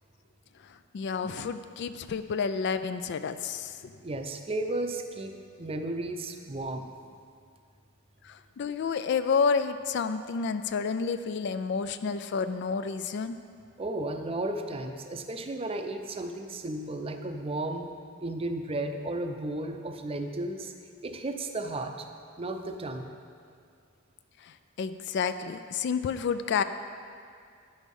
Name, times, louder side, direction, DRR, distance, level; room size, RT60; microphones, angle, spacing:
voice 1, 0.9-3.9 8.2-13.4 24.4-26.6, left 5 dB, 55° left, 11 dB, 0.3 m, -30 dB
voice 2, 4.0-6.9 13.8-17.9 18.2-20.7 21.0-22.1 22.4-23.1, right 2 dB, 30° right, 6 dB, 0.5 m, -34 dB
9.9 x 6.4 x 5.3 m, 2.2 s
head